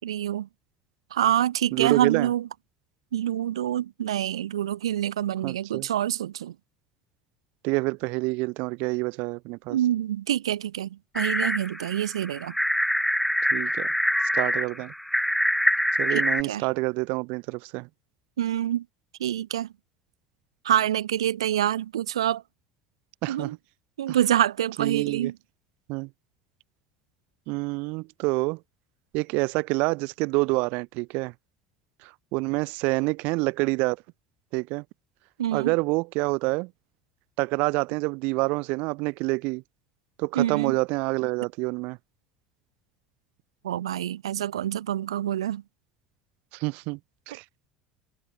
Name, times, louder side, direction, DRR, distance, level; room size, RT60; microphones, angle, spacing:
voice 1, 0.0-0.5 1.1-2.5 3.1-6.5 9.7-12.5 16.1-16.6 18.4-18.8 19.2-19.7 20.6-22.4 23.3-23.5 24.0-25.3 35.4-35.7 40.3-40.8 43.6-45.6, right 11 dB, 80° right, 3.0 m, -26 dB
voice 2, 1.7-2.3 5.4-5.9 7.6-9.8 13.5-13.9 14.3-14.9 16.0-17.9 23.2-23.6 24.1-24.2 24.8-25.3 25.9-26.1 27.5-28.6 29.1-31.3 32.0-34.0 34.5-34.8 35.5-36.7 37.4-39.6 40.2-42.0 46.5-47.0 47.3-47.4, right 27 dB, 60° right, 3.2 m, -27 dB
sound 1, 11.2-16.4, equal, ahead, 3.0 m, -25 dB
figure-of-eight pair, 65°, 3 cm